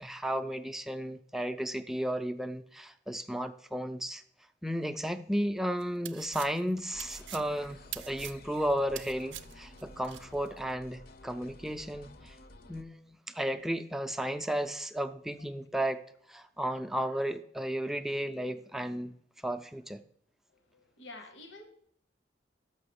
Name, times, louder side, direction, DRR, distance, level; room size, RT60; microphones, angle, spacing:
voice 1, 0.0-4.2 4.6-12.4 12.7-16.0 16.3-19.1 19.4-20.0, equal, ahead, 0.3 m, -34 dB
sound 1, 5.8-10.3, right 14 dB, 75° right, 0.4 m, -44 dB
sound 2, 6.9-12.8, left 2 dB, 55° left, 0.6 m, -52 dB
voice 2, 20.7-21.7, left 2 dB, 80° left, 1.0 m, -48 dB
6.5 x 6.0 x 6.8 m
head